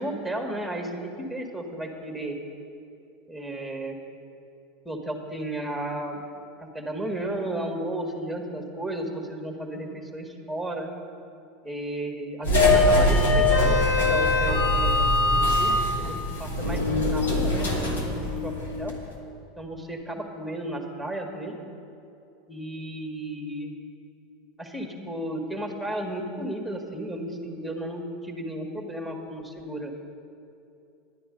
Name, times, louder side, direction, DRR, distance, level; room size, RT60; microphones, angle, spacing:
voice 1, 0.0-2.4 3.3-4.0 4.9-6.2 6.7-10.9 11.6-18.9 19.6-21.6 22.5-23.7 24.6-29.9, right 1 dB, 5° left, 2 dB, 1.8 m, -33 dB
sound 1, 12.4-19.0, left 2 dB, 85° left, 1.9 m, -22 dB
11.5 x 9.8 x 5.3 m, 2.7 s
hypercardioid pair, 90°, 0 cm